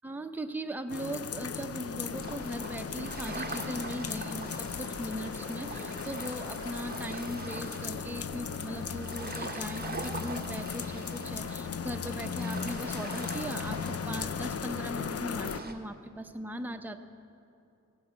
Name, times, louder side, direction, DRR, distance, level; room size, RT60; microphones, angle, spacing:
voice 1, 0.0-17.0, right 1 dB, 5° right, 6 dB, 0.7 m, -39 dB
sound 1, 0.9-15.6, left 6 dB, 50° left, 0.5 m, -37 dB
sound 2, 2.1-15.7, right 3 dB, 30° right, 1.3 m, -43 dB
16.0 x 10.0 x 7.6 m, 2.8 s
wide cardioid pair, 90°, 30 cm